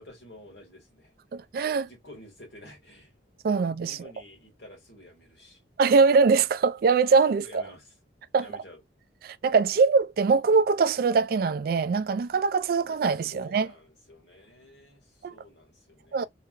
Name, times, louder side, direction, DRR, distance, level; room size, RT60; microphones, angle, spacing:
voice 1, 0.0-1.1 1.8-3.1 3.8-5.6 7.4-8.0 8.3-8.8 13.3-16.3, left 1 dB, 70° left, 2.1 m, -50 dB
voice 2, 1.3-1.9 3.4-4.0 5.8-7.6 8.3-8.5 9.2-13.7 15.2-15.3 16.1-16.3, right 4 dB, 55° right, 0.3 m, -22 dB
3.4 x 2.8 x 2.5 m
head